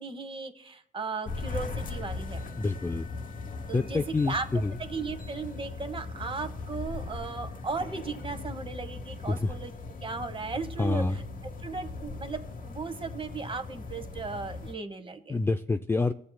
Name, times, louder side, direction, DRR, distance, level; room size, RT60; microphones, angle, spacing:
voice 1, 0.0-2.5 3.7-4.4 4.8-9.7 10.0-11.2 11.6-15.4, right 4 dB, 25° right, 8 dB, 1.0 m, -36 dB
sound 1, 1.2-14.7, left 3 dB, 45° left, 1.0 m, -39 dB
voice 2, 2.6-3.1 3.7-4.7 9.3-9.5 10.8-11.2 15.3-16.1, left 3 dB, 10° left, 7 dB, 0.3 m, -27 dB
18.5 x 7.4 x 2.2 m, 0.67 s
cardioid pair, 90°, 20 cm